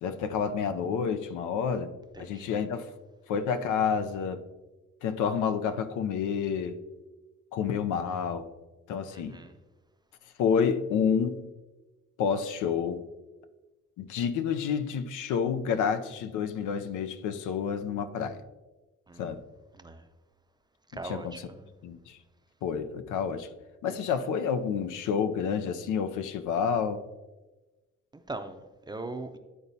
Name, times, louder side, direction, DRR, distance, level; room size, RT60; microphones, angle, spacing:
voice 1, 0.0-1.9 2.2-2.9 3.3-4.4 5.0-6.8 7.5-8.5 8.9-9.4 10.4-11.4 12.2-13.0 14.0-18.4 19.2-19.4 21.0-21.5 21.8-22.2 22.6-23.5 23.8-27.0, left 7 dB, 85° left, 9 dB, 0.6 m, -29 dB
voice 2, 2.1-2.5 9.1-9.6 19.1-19.3 19.7-20.0 20.9-21.7 28.3-29.4, right 2 dB, 15° right, 7 dB, 0.5 m, -40 dB
11.0 x 4.0 x 2.7 m, 1.1 s
cardioid pair, 90°, 30 cm